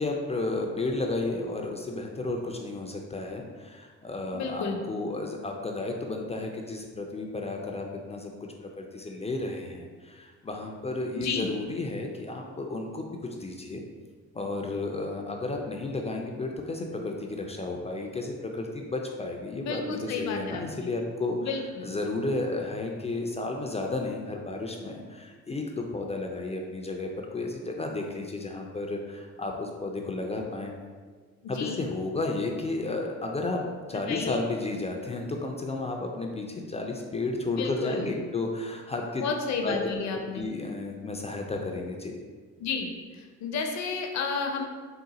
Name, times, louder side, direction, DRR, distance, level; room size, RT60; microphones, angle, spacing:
voice 1, 0.0-8.3 8.6-13.8 14.3-21.5 21.8-30.7 31.5-39.2 39.6-42.2, left 2 dB, 20° left, 1 dB, 0.4 m, -33 dB
voice 2, 4.3-4.8 11.1-11.5 19.6-20.9 21.4-21.9 31.4-31.8 34.1-34.4 37.5-38.1 39.2-40.5 42.6-44.7, left 5 dB, 65° left, 3 dB, 0.6 m, -32 dB
3.8 x 2.2 x 4.0 m, 1.5 s
cardioid pair, 90°, 30 cm